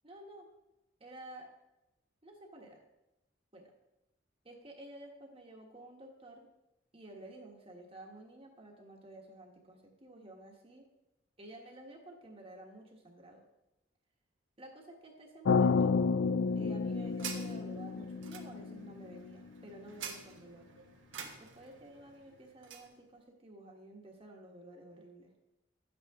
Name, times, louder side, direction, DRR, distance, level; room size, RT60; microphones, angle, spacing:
voice 1, 0.0-0.5 1.0-1.5 2.2-2.8 3.5-3.7 4.4-6.5 6.9-10.9 11.4-13.4 14.6-15.9 16.6-20.7 21.4-25.3, right 1 dB, 30° right, 0 dB, 1.4 m, -52 dB
sound 1, 15.4-19.6, left 5 dB, 85° left, 0.4 m, -30 dB
sound 2, 16.3-22.9, right 6 dB, 85° right, 1.3 m, -49 dB
12.0 x 8.7 x 3.7 m, 0.92 s
head